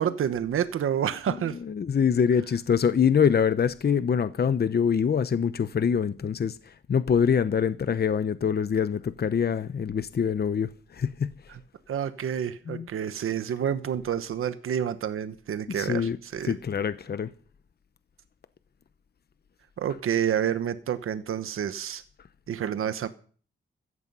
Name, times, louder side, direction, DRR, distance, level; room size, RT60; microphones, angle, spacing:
voice 1, 0.0-1.6 11.5-11.6 11.9-16.5 19.8-22.0 22.5-23.1, right 9 dB, 90° right, 1.1 m, -29 dB
voice 2, 1.7-11.3 12.7-12.9 15.8-16.2 16.4-17.3, left 7 dB, 50° left, 0.9 m, -25 dB
16.0 x 14.0 x 5.6 m
cardioid pair, 90°, 21 cm